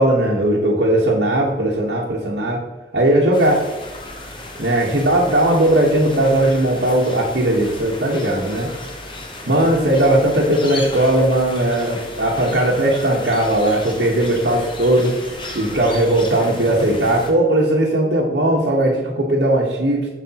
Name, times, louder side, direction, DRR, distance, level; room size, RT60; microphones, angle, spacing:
voice 1, 0.0-2.6 2.9-3.7 4.6-8.7 9.5-15.1 15.5-20.1, right 1 dB, 75° right, -4 dB, 1.2 m, -18 dB
sound 1, 3.3-17.3, left 2 dB, 30° left, 0.9 m, -34 dB
7.6 x 6.7 x 2.9 m, 1.2 s
head